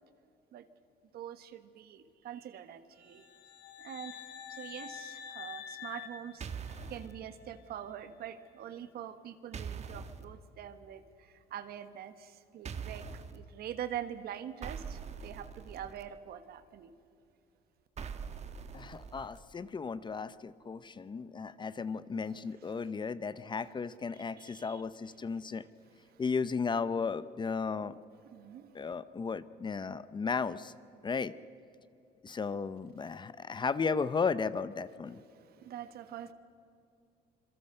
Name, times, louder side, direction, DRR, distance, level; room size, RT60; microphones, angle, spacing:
voice 1, 1.1-3.3 3.8-16.9 24.1-24.8 25.3-25.4 26.1-26.2 28.2-28.9 32.3-32.4 35.3-36.3, right 10 dB, 65° right, 11 dB, 1.5 m, -45 dB
sound 1, 3.1-7.1, left 8 dB, 80° left, 2.4 m, -47 dB
sound 2, 6.4-7.1 9.5-10.2 12.6-13.4 14.6-16.0 18.0-19.4, right 6 dB, 40° right, 1.6 m, -42 dB
voice 2, 18.7-25.6 26.2-28.0 28.7-30.7 31.0-31.3 32.2-35.2, left 5 dB, 25° left, 15 dB, 0.7 m, -35 dB
26.5 x 22.5 x 6.7 m, 2.6 s
cardioid pair, 110°, 17 cm